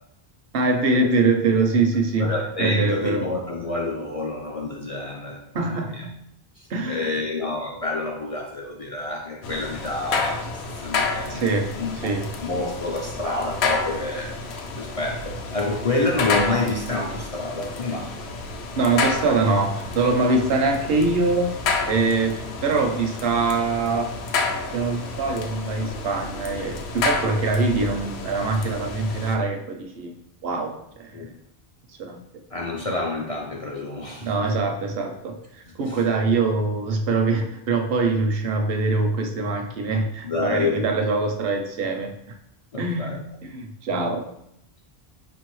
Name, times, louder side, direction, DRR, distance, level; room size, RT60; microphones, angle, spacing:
voice 1, 0.5-2.3 2.6-3.2 5.5-6.1 6.7-7.1 11.3-11.7 12.0-12.3 18.8-21.5 21.9-22.4 22.6-24.1 24.7-30.1 30.4-31.1 32.0-32.2 34.2-35.3 35.8-42.1 42.8-43.2 43.5-44.3, right 3 dB, 75° right, 3 dB, 0.8 m, -23 dB
voice 2, 2.2-6.0 6.6-11.4 11.8-12.1 12.4-14.3 14.8-18.1 31.1-31.3 32.5-34.5 35.9-36.0 40.2-40.8 42.7-43.2, left 2 dB, 50° left, -1 dB, 0.4 m, -28 dB
sound 1, 9.4-29.3, left 4 dB, 90° left, 0.9 m, -30 dB
4.9 x 2.7 x 3.0 m, 0.77 s
omnidirectional pair, 1.1 m